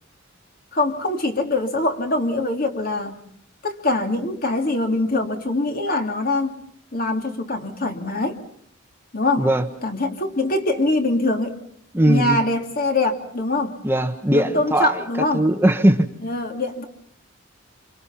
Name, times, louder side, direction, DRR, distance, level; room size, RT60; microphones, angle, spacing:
voice 1, 0.7-3.2 3.6-6.6 6.9-8.4 9.1-9.5 9.8-11.6 12.1-13.8 14.3-15.5 16.2-16.8, left 2 dB, 45° left, 4 dB, 2.9 m, -23 dB
voice 2, 11.9-12.4 13.8-15.0 15.3-16.1, right 1 dB, 10° right, 7 dB, 1.1 m, -19 dB
28.0 x 27.0 x 5.8 m, 0.63 s
head